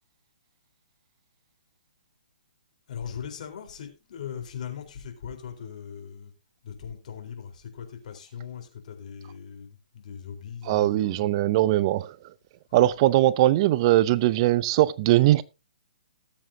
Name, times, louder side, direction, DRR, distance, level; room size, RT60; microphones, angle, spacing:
voice 1, 2.9-6.3 6.6-11.3 12.7-12.8, left 8 dB, 55° left, 4.0 m, -39 dB
voice 2, 10.7-12.2 12.7-15.4, right 15 dB, 35° right, 0.5 m, -21 dB
19.5 x 7.5 x 2.8 m
hypercardioid pair, 140°, 5 cm